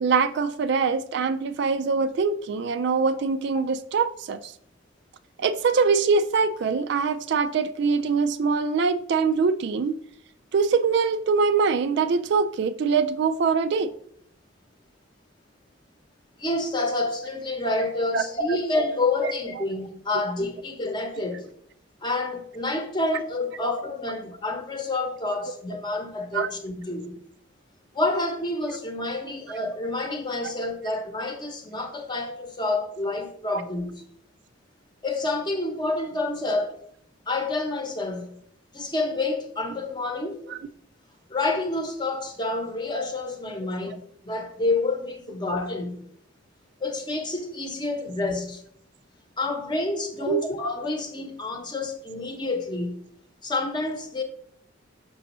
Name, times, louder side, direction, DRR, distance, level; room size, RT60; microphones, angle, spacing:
voice 1, 0.0-4.5 5.4-9.9 10.5-13.9 18.1-18.2 19.2-19.6 26.3-26.5 40.5-40.6 50.3-50.4, right 5 dB, 55° right, 0.3 m, -23 dB
voice 2, 16.4-21.5 22.0-27.2 27.9-34.0 35.0-36.8 37.3-38.3 38.7-40.4 41.3-46.0 46.8-48.6 49.4-53.0 53.4-54.2, left 2 dB, 20° left, 0.8 m, -28 dB
6.1 x 5.9 x 3.0 m
head